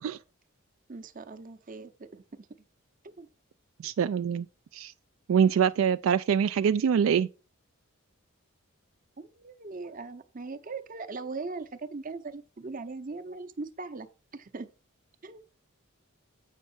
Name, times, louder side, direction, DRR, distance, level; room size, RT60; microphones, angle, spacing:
voice 1, 0.9-2.5 3.0-3.3 9.2-14.1 14.3-14.7 15.2-15.5, right 3 dB, 40° right, 0.7 m, -40 dB
voice 2, 3.8-4.5 4.7-4.9 5.3-7.3, right 7 dB, 70° right, 0.3 m, -24 dB
8.2 x 5.5 x 4.3 m
head